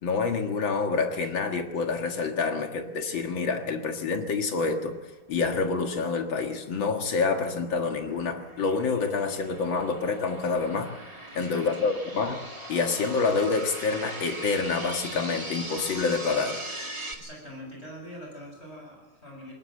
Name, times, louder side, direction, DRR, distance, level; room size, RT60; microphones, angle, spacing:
voice 1, 0.0-5.0 5.3-10.9 11.4-12.4 12.7-16.6, left 4 dB, 75° left, 5 dB, 2.6 m, -27 dB
sound 1, 6.5-17.1, right 1 dB, 15° right, 2.2 m, -40 dB
voice 2, 11.3-11.6 17.1-19.5, equal, 30° left, 0 dB, 7.6 m, -43 dB
20.5 x 20.0 x 7.8 m, 1.2 s
omnidirectional pair, 2.2 m